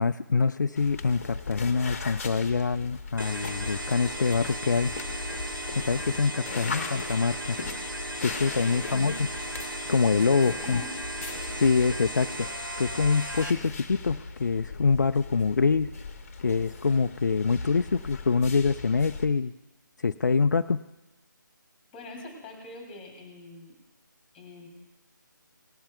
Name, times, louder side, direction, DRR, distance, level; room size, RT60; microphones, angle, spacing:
voice 1, 0.0-4.9 5.7-7.6 8.2-9.3 9.9-10.8 11.6-12.5 12.8-15.9 16.4-19.5 20.0-20.8, left 4 dB, 60° left, 10 dB, 0.4 m, -25 dB
sound 1, 0.8-19.3, left 4 dB, 40° left, 1.0 m, -39 dB
sound 2, 3.2-13.5, right 1 dB, 85° right, 1.3 m, -36 dB
voice 2, 8.5-9.3 10.2-10.9 21.9-23.8 24.3-24.7, left 2 dB, 10° left, 1 dB, 2.7 m, -43 dB
18.5 x 12.5 x 2.3 m, 0.98 s
figure-of-eight pair, 155°, 11 cm